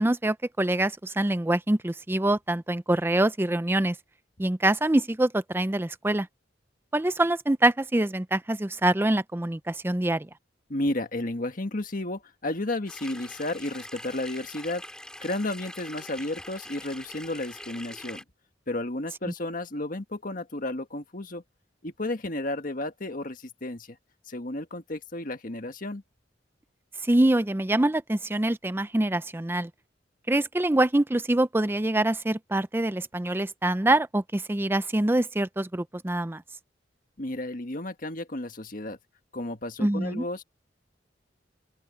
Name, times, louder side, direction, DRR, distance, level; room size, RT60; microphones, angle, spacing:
voice 1, 0.0-4.0 4.4-6.3 6.9-10.3 27.0-29.7 30.3-36.4 39.8-40.2, right 1 dB, 10° right, 0.5 m, -25 dB
voice 2, 10.7-14.8 15.2-18.2 18.7-21.4 21.8-24.0 24.3-26.0 37.2-39.0 39.3-40.4, left 1 dB, 50° left, 1.6 m, -32 dB
sound 1, 12.9-18.2, left 1 dB, 5° left, 4.7 m, -43 dB
open air
head